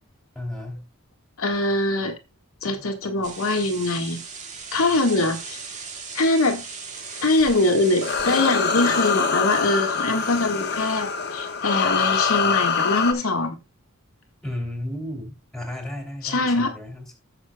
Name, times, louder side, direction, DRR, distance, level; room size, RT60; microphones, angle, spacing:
voice 1, 0.3-0.9 14.4-17.2, left 1 dB, ahead, 3.0 m, -33 dB
voice 2, 1.4-2.2 2.6-4.2 4.7-5.6 6.1-6.7 7.2-13.6 16.2-16.8, left 2 dB, 90° left, 1.9 m, -23 dB
sound 1, 3.2-8.4, right 5 dB, 35° right, 1.9 m, -38 dB
sound 2, 7.1-13.1, left 5 dB, 50° left, 1.3 m, -24 dB
16.5 x 6.6 x 2.3 m
head